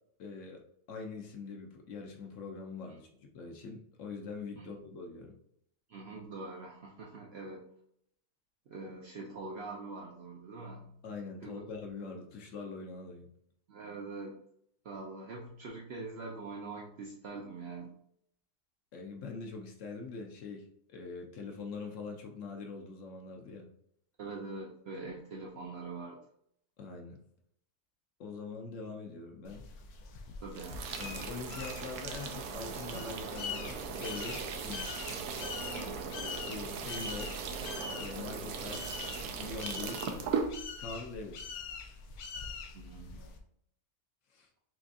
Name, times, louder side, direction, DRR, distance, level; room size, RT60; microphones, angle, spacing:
voice 1, 0.2-0.6 0.9-5.4 11.0-13.3 18.9-23.7 26.8-27.2 28.2-29.6 31.0-35.0 36.5-37.4 38.0-40.2 40.8-41.5 44.3-44.5, left 4 dB, 65° left, 2 dB, 0.9 m, -43 dB
voice 2, 5.9-7.7 8.7-11.0 11.4-11.6 13.7-14.4 14.8-17.9 24.2-26.2 30.4-30.8 35.8-36.2 42.7-43.4, right 3 dB, 65° right, -2 dB, 0.6 m, -44 dB
sound 1, 29.4-43.4, left 5 dB, 90° left, 1.1 m, -44 dB
sound 2, 30.5-40.5, right 5 dB, 85° right, 1.1 m, -38 dB
5.8 x 2.3 x 2.6 m, 0.70 s
omnidirectional pair, 1.6 m